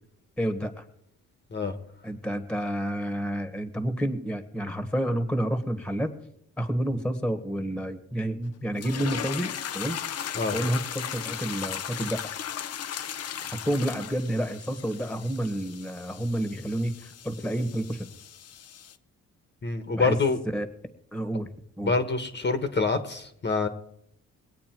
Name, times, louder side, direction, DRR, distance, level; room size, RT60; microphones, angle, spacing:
voice 1, 0.4-0.8 2.0-6.1 6.6-10.0 10.5-12.2 13.6-18.1 19.9-20.2 20.5-20.7 21.1-21.5 21.8-21.9, right 1 dB, 5° left, 9 dB, 1.5 m, -29 dB
sound 1, 8.8-18.9, left 9 dB, 55° left, 0.8 m, -37 dB
voice 2, 19.6-20.4 21.8-23.7, left 4 dB, 35° left, 8 dB, 1.3 m, -26 dB
21.5 x 8.5 x 4.6 m, 0.71 s
cardioid pair, 90°, 30 cm